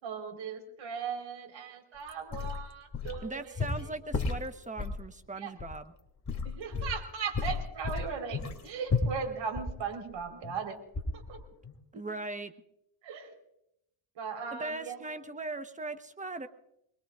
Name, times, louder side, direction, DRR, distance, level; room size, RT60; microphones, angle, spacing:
voice 1, 0.0-3.5 3.8-3.9 5.3-5.5 6.4-10.8 11.1-11.4 11.9-12.0 13.0-13.3 14.1-15.1, right 6 dB, 65° right, 3 dB, 4.3 m, -38 dB
sound 1, 2.1-3.3 3.5-5.0 5.6-5.7 6.2-7.0 7.3-10.6 10.9-11.4 11.6-11.7, left 4 dB, 35° left, 2.9 m, -33 dB
voice 2, 3.2-5.9 11.9-12.5 14.5-16.5, right 2 dB, 15° right, 9 dB, 1.1 m, -39 dB
24.0 x 22.0 x 2.5 m, 0.80 s
cardioid pair, 100°, 49 cm